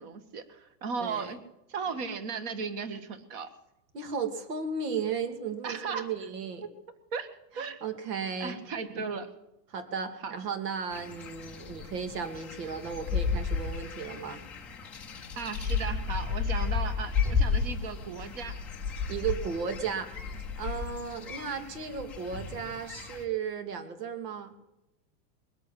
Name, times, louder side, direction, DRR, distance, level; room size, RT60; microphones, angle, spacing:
voice 1, 0.0-1.4 1.7-3.5 5.6-6.1 6.6-6.7 7.1-7.3 7.5-7.8 8.4-9.3 10.2-10.3 15.3-18.6, right 5 dB, 35° right, 11 dB, 1.6 m, -36 dB
voice 2, 1.0-1.3 3.9-6.7 7.8-8.6 9.7-14.4 19.1-20.1 20.6-24.5, right 6 dB, 70° right, 7 dB, 2.9 m, -35 dB
sound 1, 10.9-23.2, left 5 dB, 5° left, 0.6 m, -33 dB
21.5 x 8.4 x 7.6 m, 0.88 s
supercardioid pair, 175°, 49 cm